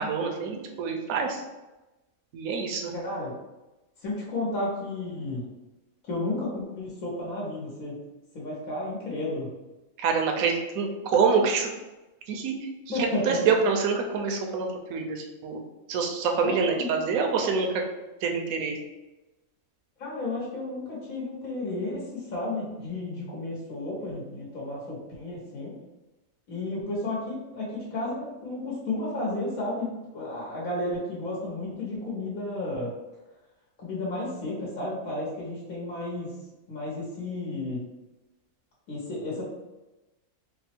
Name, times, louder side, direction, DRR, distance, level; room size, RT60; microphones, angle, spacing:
voice 1, 0.0-1.4 2.3-2.9 10.0-11.7 12.3-12.7 13.0-15.6 15.9-17.8 18.2-18.8, right 5 dB, 80° right, 2 dB, 1.0 m, -26 dB
voice 2, 2.9-3.3 4.0-5.4 6.0-8.0 8.3-9.5 12.9-13.4 16.4-17.0 20.0-25.8 26.5-32.9 33.8-36.3 36.7-37.9 38.9-39.4, left 2 dB, 85° left, -5 dB, 1.4 m, -32 dB
3.4 x 2.0 x 4.2 m, 1.1 s
omnidirectional pair, 1.4 m